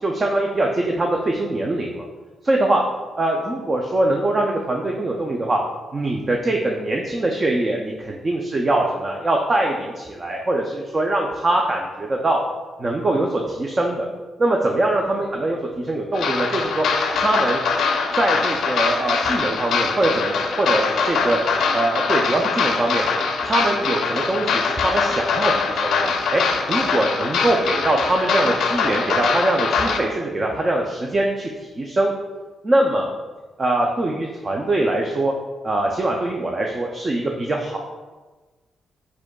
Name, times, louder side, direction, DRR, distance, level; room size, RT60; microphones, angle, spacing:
voice 1, 0.0-2.1 2.4-2.8 3.2-5.6 5.9-12.4 12.8-14.1 14.4-16.8 17.2-17.6 18.1-21.4 21.7-23.0 23.4-26.4 26.7-31.5 31.8-32.1 32.6-33.1 33.6-35.3 35.6-37.8, right 1 dB, 25° right, 0 dB, 0.3 m, -22 dB
sound 1, 16.1-30.0, left 5 dB, 75° left, 0.4 m, -22 dB
4.8 x 4.5 x 2.2 m, 1.3 s
wide cardioid pair, 170°, 0 cm